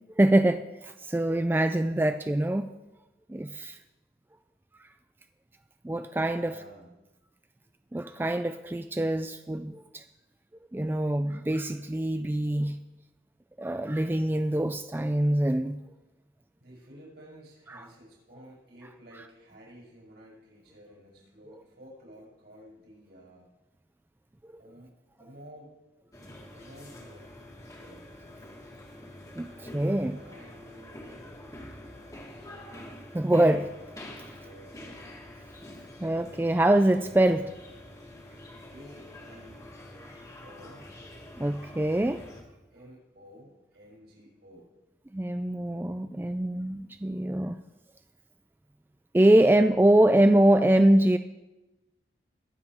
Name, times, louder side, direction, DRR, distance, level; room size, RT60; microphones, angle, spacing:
voice 1, 0.2-2.7 3.3-3.8 5.8-6.5 7.9-10.0 10.7-12.8 13.6-15.8 17.7-17.9 24.4-24.5 29.4-30.2 33.1-33.7 36.0-37.5 41.4-42.2 45.1-47.6 49.1-51.2, right 1 dB, 10° right, 9 dB, 0.3 m, -24 dB
voice 2, 6.2-6.9 16.6-23.5 24.6-24.9 25.2-25.7 26.5-27.3 27.7-28.0 29.4-32.6 33.4-35.1 38.7-39.7 40.4-40.9 42.7-44.7, equal, 70° right, -3 dB, 5.8 m, -52 dB
sound 1, 26.1-42.4, left 1 dB, 20° left, 1.8 m, -46 dB
21.5 x 7.7 x 4.5 m, 1.0 s
head